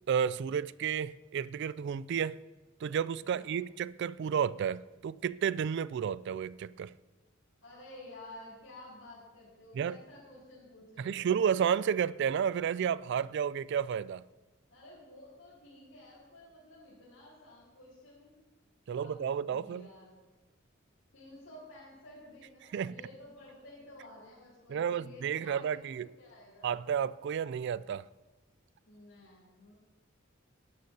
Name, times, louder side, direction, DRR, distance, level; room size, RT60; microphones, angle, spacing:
voice 1, 0.1-2.4 2.8-6.9 9.7-10.0 11.0-14.2 18.9-19.9 22.7-22.9 24.7-26.1 26.6-28.0, right 8 dB, 60° right, 0.3 m, -31 dB
voice 2, 7.6-11.3 14.7-18.5 18.9-20.2 21.1-26.7 28.8-29.7, left 1 dB, 80° left, 4.4 m, -52 dB
18.0 x 12.5 x 2.8 m
head